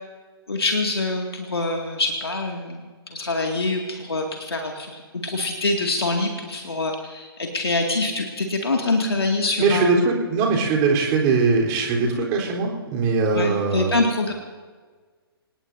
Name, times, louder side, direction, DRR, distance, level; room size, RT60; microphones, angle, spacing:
voice 1, 0.5-10.0 13.3-14.3, left 2 dB, 75° left, 2 dB, 2.2 m, -25 dB
voice 2, 9.6-14.0, right 4 dB, 25° right, -2 dB, 3.8 m, -21 dB
26.5 x 19.0 x 2.7 m, 1.5 s
figure-of-eight pair, 130°, 13 cm